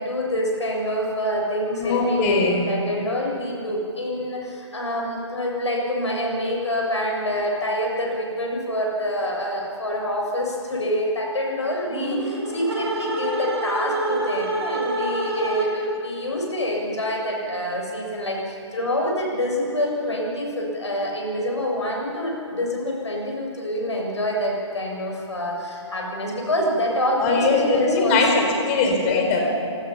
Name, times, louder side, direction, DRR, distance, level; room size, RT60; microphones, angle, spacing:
voice 1, 0.0-28.5, left 1 dB, 70° left, -1 dB, 7.2 m, -26 dB
voice 2, 1.8-2.6 27.2-29.4, left 3 dB, 25° left, 2 dB, 4.3 m, -21 dB
Slow Scream, 11.8-16.0, right 1 dB, 50° right, 5.6 m, -27 dB
27.5 x 19.0 x 5.8 m, 2.7 s
figure-of-eight pair, 135°, 16 cm